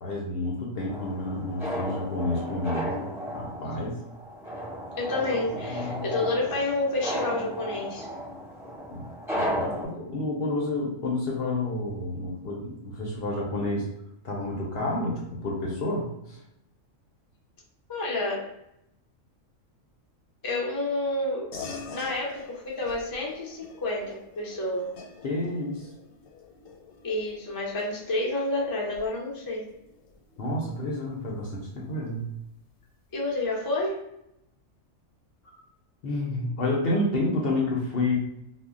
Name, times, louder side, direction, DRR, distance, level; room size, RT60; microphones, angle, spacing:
voice 1, 0.0-4.0 5.7-6.1 8.9-9.1 9.4-13.9 14.2-16.4 25.2-25.9 30.4-32.2 35.4-35.6 36.0-38.2, left 2 dB, 60° left, -2 dB, 0.7 m, -30 dB
sound 1, 0.9-9.9, equal, ahead, 0.8 m, -34 dB
voice 2, 5.0-8.1 17.9-18.5 20.4-21.5 21.9-24.9 27.0-29.6 33.1-34.0, left 2 dB, 35° left, -3 dB, 0.3 m, -29 dB
sound 2, 21.5-31.4, left 4 dB, 85° left, 1.0 m, -46 dB
2.1 x 2.1 x 3.6 m, 0.82 s
omnidirectional pair, 1.4 m